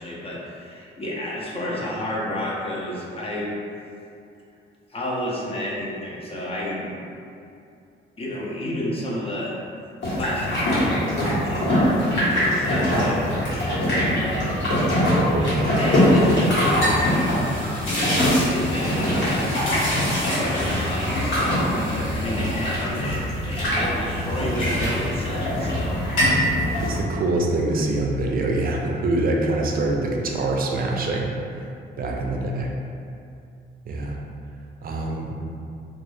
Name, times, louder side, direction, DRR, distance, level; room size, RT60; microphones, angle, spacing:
voice 1, 0.0-3.5 4.9-6.9 8.2-9.6 10.1-13.6 14.1-14.7 15.8-17.4 18.5-19.9 20.3-21.6 22.1-26.0, left 1 dB, 30° left, -5 dB, 0.6 m, -31 dB
sound 1, 10.0-27.0, equal, 65° left, 1.1 m, -23 dB
voice 2, 15.3-15.8 16.8-17.0 26.8-31.3 32.0-32.8 33.9-34.2 34.8-35.3, right 2 dB, 50° right, 0 dB, 0.4 m, -25 dB
sound 2, 16.0-23.8 24.1-25.8 26.1-26.5, equal, 90° left, 1.2 m, -28 dB
2.2 x 2.0 x 3.1 m, 2.5 s
cardioid pair, 90°, 20 cm